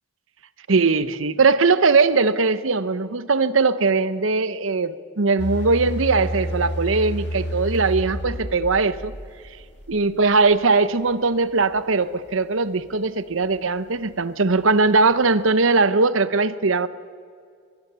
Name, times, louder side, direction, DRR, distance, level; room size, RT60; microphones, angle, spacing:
voice 1, 0.7-9.1 9.9-16.9, right 4 dB, 80° right, 0.9 m, -20 dB
sound 1, 5.4-10.2 10.5-10.6, equal, 55° left, 1.9 m, -30 dB
24.0 x 20.5 x 6.9 m
head